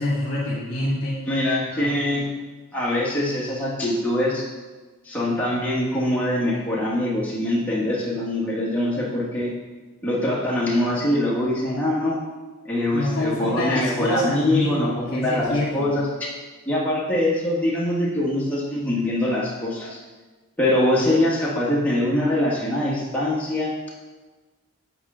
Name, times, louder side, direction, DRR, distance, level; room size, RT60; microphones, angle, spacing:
voice 1, 0.0-1.2 1.7-2.0 12.9-16.0, left 1 dB, 55° left, -7 dB, 1.6 m, -26 dB
voice 2, 1.2-2.3 2.7-4.5 5.0-9.5 10.0-12.2 12.6-16.3 16.7-20.0 20.6-23.9, left 1 dB, 5° left, -7 dB, 1.2 m, -23 dB
8.2 x 4.4 x 3.7 m, 1.3 s
head